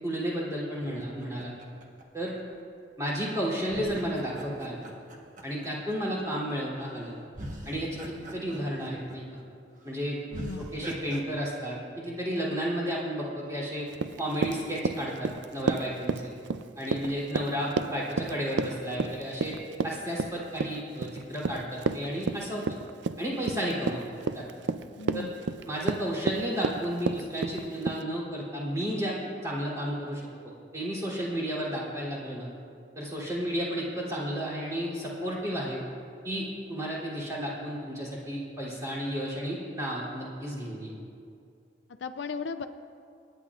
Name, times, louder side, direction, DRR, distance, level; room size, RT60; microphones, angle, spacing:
voice 1, 0.0-1.5 2.1-2.3 3.0-4.8 5.4-7.2 7.6-9.2 9.8-10.2 10.6-13.9 14.2-16.3 16.8-19.6 19.8-22.8 23.2-24.0 24.3-24.4 25.1-25.3 25.7-29.2 29.4-32.5 32.9-35.8 36.2-40.9, equal, 15° right, -6 dB, 3.0 m, -32 dB
sound 1, 0.8-2.8 3.7-6.2 6.9-7.0 7.3-9.4 9.8-9.9 10.3-11.2, equal, 40° right, 1.2 m, -42 dB
voice 2, 10.3-10.7 25.0-25.3 42.0-42.7, left 4 dB, 70° left, 7 dB, 0.5 m, -36 dB
Run, 13.9-28.0, right 4 dB, 70° right, 0.4 m, -31 dB
27.5 x 10.5 x 2.4 m, 2.4 s
head